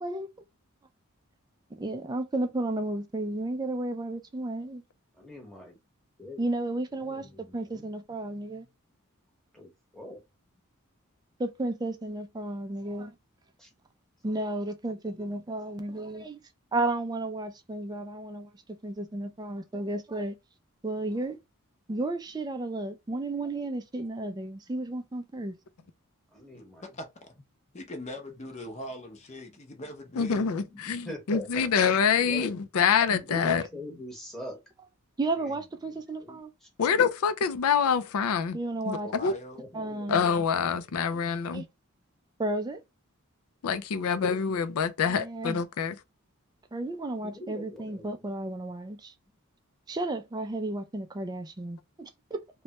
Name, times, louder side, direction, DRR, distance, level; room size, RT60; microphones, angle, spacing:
voice 1, 1.8-4.8 6.4-8.7 11.4-13.2 14.2-16.4 16.7-18.5 18.8-20.3 20.8-21.4 21.9-25.6 35.2-36.5 38.5-39.1 39.7-40.3 41.5-41.7 42.4-42.8 45.1-45.6 46.7-49.1 49.9-52.4, right 2 dB, 20° right, 0.3 m, -33 dB
voice 2, 5.2-5.8 6.2-6.4 7.0-7.9 8.3-8.6 9.5-10.2 13.6-13.7 26.3-26.8 30.7-31.7 32.2-32.5 33.1-34.6 35.4-35.5 36.2-36.9 39.6-40.1 47.2-48.2, equal, ahead, 0.9 m, -43 dB
voice 3, 27.7-30.5 39.0-39.6, left 1 dB, 30° left, 0.7 m, -41 dB
voice 4, 30.2-33.6 36.8-38.6 38.9-39.3 40.1-41.7 43.6-46.0, left 6 dB, 85° left, 0.4 m, -26 dB
3.1 x 2.2 x 2.8 m
head